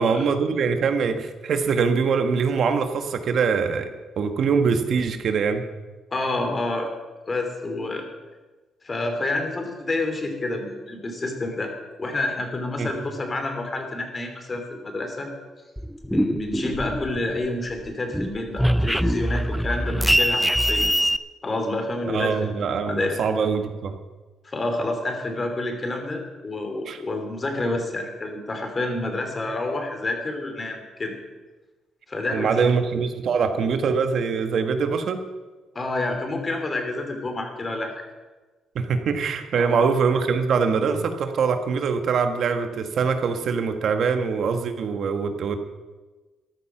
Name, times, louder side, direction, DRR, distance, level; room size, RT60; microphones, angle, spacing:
voice 1, 0.0-5.6 12.8-12.9 22.1-24.0 26.9-27.0 32.3-35.2 38.7-45.6, right 5 dB, 60° right, 7 dB, 1.5 m, -23 dB
voice 2, 6.1-6.9 7.3-8.1 8.8-11.7 12.0-15.3 16.0-20.9 21.4-23.2 24.4-31.1 32.1-32.7 35.7-37.9 39.6-39.8, left 2 dB, 30° left, 5 dB, 3.2 m, -28 dB
sound 1, 15.8-17.5 17.8-21.2, equal, ahead, 0.5 m, -23 dB
14.0 x 11.5 x 6.1 m, 1.3 s
cardioid pair, 90°, 0 cm